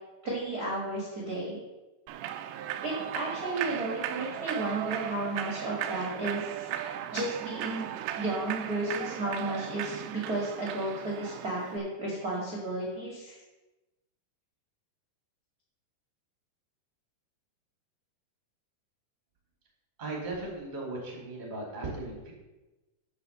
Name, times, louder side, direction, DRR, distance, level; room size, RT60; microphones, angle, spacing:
voice 1, 0.2-1.6 2.8-7.9 8.2-13.3, right 2 dB, 35° right, -4 dB, 1.5 m, -33 dB
Human voice / Clapping / Cheering, 2.1-11.8, right 11 dB, 85° right, 2.1 m, -37 dB
voice 2, 20.0-22.3, right 2 dB, 15° right, -1 dB, 1.7 m, -37 dB
8.3 x 6.6 x 6.7 m, 1.1 s
omnidirectional pair, 5.0 m